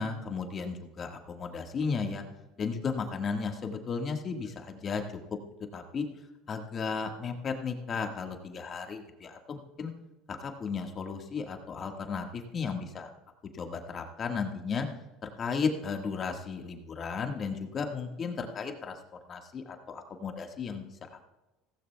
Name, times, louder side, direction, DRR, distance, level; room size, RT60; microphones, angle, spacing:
voice 1, 0.0-2.2 2.6-5.2 5.7-6.0 6.5-9.9 10.3-13.1 13.5-14.9 15.2-19.0 19.3-21.3, left 5 dB, 35° left, 4 dB, 1.6 m, -34 dB
16.5 x 15.5 x 2.3 m, 1.0 s
supercardioid pair, 100°, 0 cm